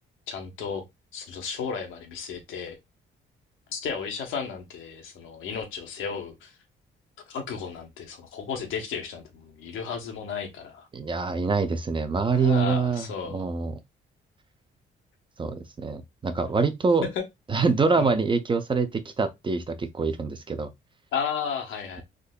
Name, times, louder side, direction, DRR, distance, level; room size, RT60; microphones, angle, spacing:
voice 1, 0.3-0.8 1.1-2.8 3.7-6.5 7.3-10.9 12.3-13.4 17.2-17.3 18.0-18.1 21.1-22.0, left 6 dB, 85° left, 0.9 m, -33 dB
voice 2, 10.9-13.7 15.4-17.0 17.5-20.7, right 4 dB, 25° right, 0.5 m, -25 dB
3.6 x 2.7 x 2.2 m
cardioid pair, 90°, 20 cm